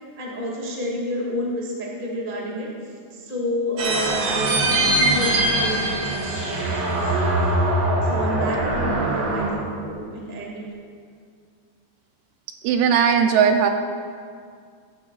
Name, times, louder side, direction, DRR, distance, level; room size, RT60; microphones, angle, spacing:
voice 1, 0.2-2.7 3.1-7.0 8.0-10.6, left 1 dB, 35° right, -3 dB, 0.8 m, -29 dB
sound 1, 3.8-9.5, right 1 dB, 55° right, 3.0 m, -22 dB
voice 2, 12.6-13.7, right 7 dB, 80° right, 5 dB, 2.4 m, -17 dB
15.5 x 12.0 x 2.4 m, 2.1 s
omnidirectional pair, 4.7 m